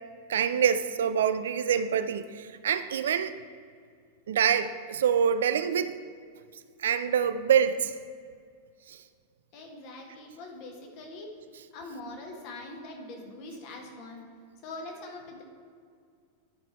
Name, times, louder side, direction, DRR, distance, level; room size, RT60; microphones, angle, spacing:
voice 1, 0.3-3.4 4.3-5.9 6.8-7.9 8.9-9.0, right 8 dB, 60° right, 11 dB, 0.3 m, -26 dB
voice 2, 9.5-11.3 11.7-14.3 14.6-15.4, left 2 dB, 45° left, 1 dB, 1.5 m, -43 dB
10.5 x 5.1 x 4.4 m, 2.1 s
figure-of-eight pair, 90°, 0 cm